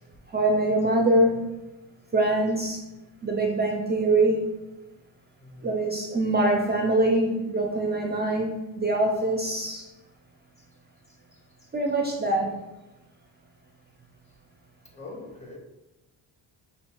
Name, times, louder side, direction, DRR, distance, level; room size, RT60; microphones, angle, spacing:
voice 1, 0.3-1.5 2.1-2.8 3.2-4.5 5.6-9.9 11.7-12.6, right 2 dB, 25° right, 0 dB, 0.3 m, -24 dB
voice 2, 5.4-5.7 10.6-10.7 11.1-11.7 14.8-15.6, left 2 dB, 15° left, 0 dB, 0.7 m, -45 dB
5.2 x 2.3 x 2.2 m, 1.0 s
cardioid pair, 95°, 48 cm